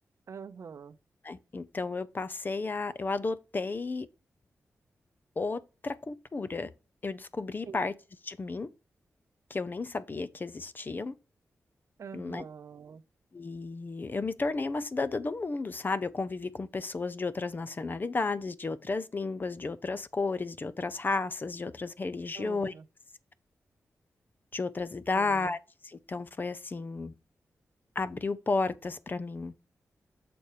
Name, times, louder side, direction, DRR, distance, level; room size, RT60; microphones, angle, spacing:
voice 1, 0.3-1.0 7.7-7.9 12.0-13.0 22.3-22.9 25.1-25.5, right 6 dB, 65° right, 0.6 m, -45 dB
voice 2, 1.2-4.1 5.4-6.7 7.0-7.9 8.2-8.7 9.5-11.1 12.1-12.4 13.3-22.7 24.5-25.6 25.8-27.1 28.0-29.5, left 3 dB, 35° left, 0.6 m, -33 dB
6.9 x 4.3 x 4.8 m
wide cardioid pair, 90°, 5 cm